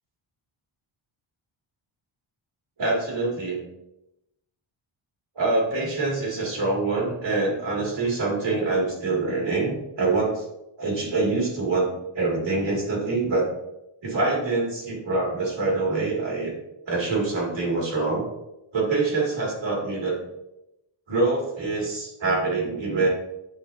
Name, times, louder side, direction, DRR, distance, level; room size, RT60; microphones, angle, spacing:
voice 1, 2.8-3.6 5.3-10.4 10.8-11.9 12.1-13.5 14.0-16.5 16.9-18.3 18.7-20.2 21.1-23.1, right 3 dB, 65° right, -4 dB, 2.7 m, -25 dB
10.0 x 5.2 x 2.8 m, 0.90 s
wide cardioid pair, 160°, 49 cm